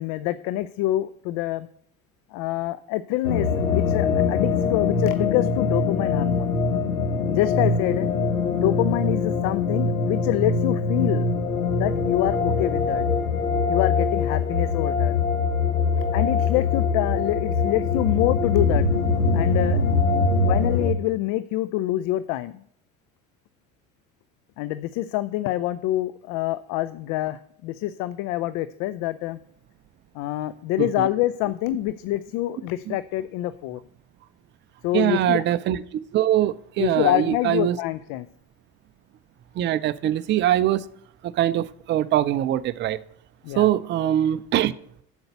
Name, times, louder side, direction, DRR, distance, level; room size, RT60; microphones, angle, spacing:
voice 1, 0.0-1.7 2.3-6.5 7.3-8.1 8.5-11.3 11.8-13.0 13.7-15.1 16.1-18.9 19.3-19.8 20.5-22.6 24.6-29.4 30.1-33.8 34.8-35.4 36.8-38.3 43.4-43.7, left 15 dB, 45° left, 0.5 m, -26 dB
sound 1, 3.2-20.9, left 4 dB, 85° left, 1.0 m, -23 dB
voice 2, 34.9-37.8 39.6-40.9 41.2-43.0 43.6-44.7, right 12 dB, 30° right, 0.5 m, -23 dB
7.8 x 7.0 x 7.9 m
figure-of-eight pair, 60°, 41 cm